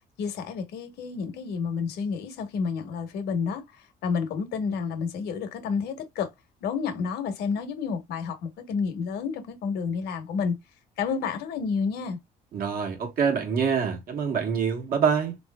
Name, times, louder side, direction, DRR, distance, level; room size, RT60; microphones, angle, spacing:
voice 1, 0.2-3.6 4.0-6.3 6.6-10.5 11.0-12.2, left 5 dB, 75° left, 1.0 m, -30 dB
voice 2, 12.5-15.4, right 6 dB, 60° right, 1.3 m, -25 dB
3.8 x 3.0 x 2.2 m
cardioid pair, 110°, 17 cm